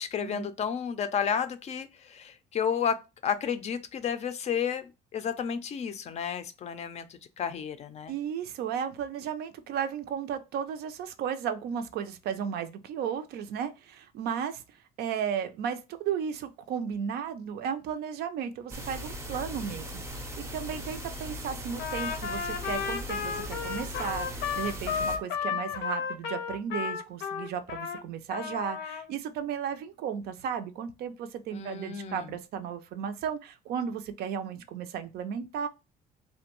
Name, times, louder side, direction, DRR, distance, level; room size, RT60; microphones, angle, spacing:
voice 1, 0.0-8.1 31.5-32.3, left 7 dB, 40° left, 0.4 m, -32 dB
voice 2, 8.1-35.7, right 8 dB, 70° right, 0.4 m, -34 dB
sound 1, 18.7-25.2, equal, 15° right, 0.5 m, -39 dB
Trumpet, 21.8-28.0 28.3-29.1, left 6 dB, 90° left, 0.6 m, -33 dB
2.5 x 2.2 x 2.9 m
cardioid pair, 110°, 17 cm